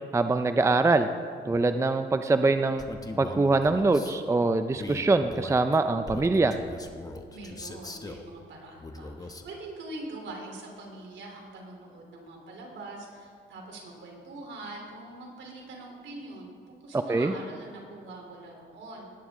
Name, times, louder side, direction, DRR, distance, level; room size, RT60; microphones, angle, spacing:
voice 1, 0.1-1.1 1.5-2.8 3.2-6.5 17.1-17.3, right 3 dB, 15° right, 9 dB, 0.5 m, -23 dB
Male speech man speaking, 2.8-4.2 4.7-8.3 8.8-9.5, left 2 dB, 20° left, 1.0 m, -40 dB
voice 2, 7.3-19.1, right 2 dB, 70° right, 0 dB, 3.4 m, -43 dB
19.0 x 9.4 x 3.7 m, 2.3 s
cardioid pair, 90°, 20 cm